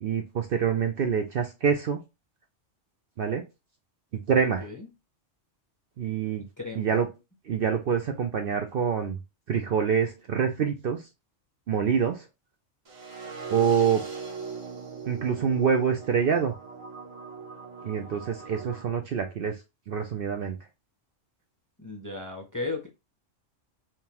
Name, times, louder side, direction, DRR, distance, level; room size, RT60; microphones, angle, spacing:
voice 1, 0.0-2.0 3.2-3.4 4.3-4.7 6.0-6.4 6.8-7.1 7.5-9.2 9.5-11.0 11.7-12.3 13.5-14.0 15.1-16.5 17.8-19.6 19.9-20.6, right 7 dB, 60° right, 0.6 m, -26 dB
voice 2, 6.6-7.0 21.8-22.9, left 3 dB, 20° left, 0.6 m, -35 dB
sound 1, 12.9-18.8, right 5 dB, 30° right, 0.7 m, -40 dB
3.6 x 2.9 x 2.9 m
omnidirectional pair, 1.3 m